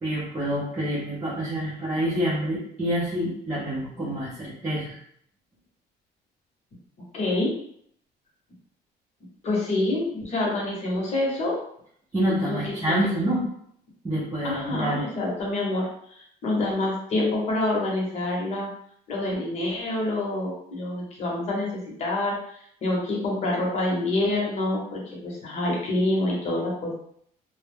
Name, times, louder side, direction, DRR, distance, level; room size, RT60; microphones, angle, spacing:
voice 1, 0.0-5.0 12.1-13.4 14.0-15.0, right 1 dB, 15° right, -9 dB, 0.6 m, -27 dB
voice 2, 7.1-7.5 9.4-11.6 12.5-12.9 14.4-15.9 16.1-18.7 19.1-26.9, left 2 dB, 40° left, -3 dB, 0.8 m, -27 dB
2.2 x 2.0 x 3.3 m, 0.67 s
cardioid pair, 165°, 17 cm